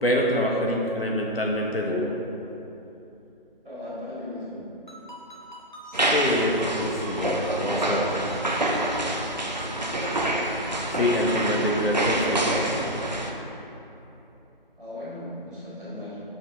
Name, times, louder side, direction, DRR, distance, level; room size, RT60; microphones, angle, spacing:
voice 1, 0.0-2.1 6.1-8.1 11.0-12.6, left 1 dB, 80° left, -1 dB, 1.4 m, -25 dB
voice 2, 3.6-4.7 14.8-16.2, left 1 dB, 10° right, -22 dB, 1.6 m, -37 dB
Ringtone, 4.9-11.7, equal, 50° left, 1.7 m, -43 dB
sound 1, 5.9-13.3, right 1 dB, 50° right, 0.7 m, -27 dB
8.9 x 6.1 x 3.8 m, 2.9 s
figure-of-eight pair, 175°, 29 cm